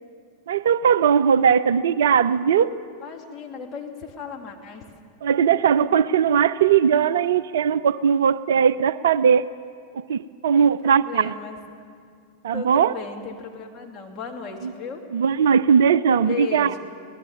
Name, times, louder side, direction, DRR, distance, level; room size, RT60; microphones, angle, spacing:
voice 1, 0.5-2.7 5.2-9.5 9.9-11.3 12.4-12.9 14.6-14.7 15.1-16.7, right 7 dB, 60° right, 16 dB, 0.5 m, -19 dB
voice 2, 3.0-4.8 10.5-11.6 12.5-15.0 16.2-16.8, left 6 dB, 25° left, 1 dB, 2.9 m, -35 dB
25.5 x 18.5 x 7.3 m, 2.2 s
figure-of-eight pair, 90°, 0 cm